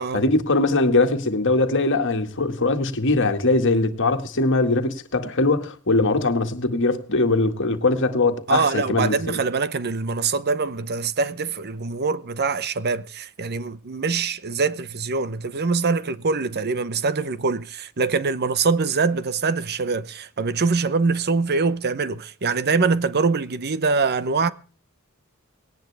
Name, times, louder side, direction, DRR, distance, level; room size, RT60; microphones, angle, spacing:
voice 1, 0.0-9.4, left 2 dB, 60° left, 1.9 m, -21 dB
voice 2, 8.5-24.5, right 4 dB, 50° right, 0.8 m, -24 dB
19.0 x 18.5 x 3.4 m
head